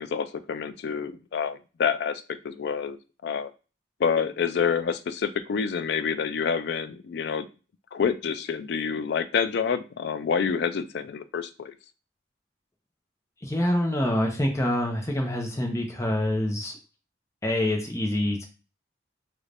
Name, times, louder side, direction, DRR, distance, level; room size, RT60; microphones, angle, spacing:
voice 1, 0.0-3.0 3.2-3.5 4.0-7.5 7.9-11.8, left 6 dB, 60° left, 11 dB, 0.3 m, -28 dB
voice 2, 13.4-16.8 17.4-18.5, left 1 dB, 15° left, 2 dB, 0.7 m, -26 dB
3.1 x 2.5 x 3.3 m, 0.33 s
head